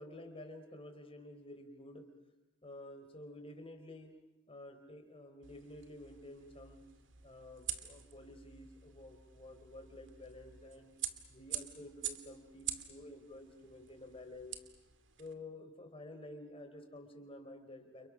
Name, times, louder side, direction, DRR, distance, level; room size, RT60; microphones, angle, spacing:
voice 1, 0.0-2.1 2.6-4.2 4.5-6.9 7.2-10.9 11.3-14.6 15.2-18.1, left 1 dB, 30° left, 6 dB, 4.1 m, -51 dB
sound 1, 5.4-15.3, right 10 dB, 70° right, 2.1 m, -46 dB
30.0 x 29.5 x 6.3 m, 0.99 s
head